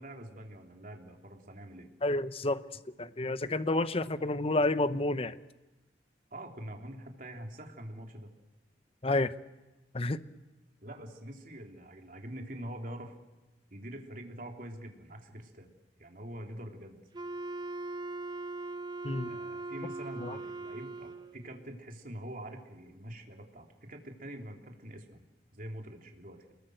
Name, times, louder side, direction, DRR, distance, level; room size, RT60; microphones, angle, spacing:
voice 1, 0.0-1.9 2.4-2.5 6.3-8.3 10.8-13.1 13.7-15.7 16.0-17.0 19.3-26.5, right 1 dB, 50° right, 2 dB, 3.3 m, -45 dB
voice 2, 2.0-2.6 3.0-5.4 9.0-9.3 9.9-10.2 19.0-19.4 20.2-20.4, left 2 dB, 35° left, 13 dB, 0.9 m, -30 dB
Wind instrument woodwind instrument, 17.1-21.4, right 3 dB, 25° right, 0.9 m, -40 dB
28.5 x 21.5 x 7.9 m, 1.1 s
head